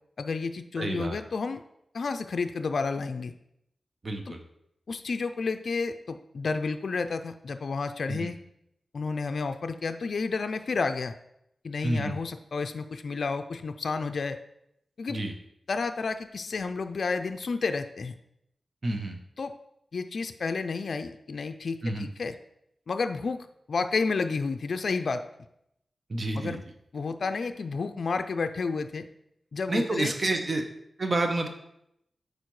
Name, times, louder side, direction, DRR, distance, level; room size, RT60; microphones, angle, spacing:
voice 1, 0.2-1.6 1.9-3.3 4.3-4.4 4.9-8.4 8.9-11.2 11.6-14.4 15.0-15.2 15.7-18.2 19.4-19.5 19.9-22.4 22.9-25.2 26.3-26.6 26.9-29.0 29.5-30.1, left 4 dB, 65° left, 8 dB, 0.4 m, -31 dB
voice 2, 0.8-1.2 4.0-4.4 8.1-8.3 11.8-12.1 15.1-15.3 18.8-19.2 21.8-22.1 26.1-26.6 29.7-30.6 31.0-31.5, right 2 dB, 45° right, 4 dB, 0.8 m, -29 dB
8.1 x 5.0 x 3.2 m, 0.77 s
wide cardioid pair, 90°, 0 cm